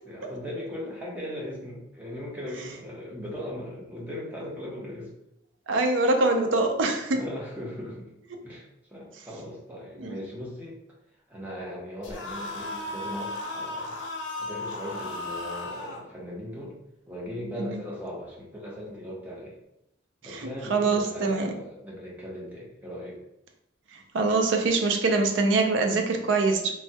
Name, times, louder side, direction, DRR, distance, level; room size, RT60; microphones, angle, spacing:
voice 1, 0.0-5.1 7.1-8.1 8.4-10.8 11.3-14.0 14.4-16.8 17.1-19.6 20.2-23.2, left 1 dB, 10° right, -5 dB, 0.8 m, -38 dB
voice 2, 5.7-7.2 10.0-10.2 17.6-17.8 20.3-21.5 24.1-26.8, right 3 dB, 80° right, 4 dB, 0.5 m, -24 dB
sound 1, 12.0-16.0, left 2 dB, 80° left, 0.7 m, -35 dB
3.2 x 2.2 x 2.7 m, 0.84 s
head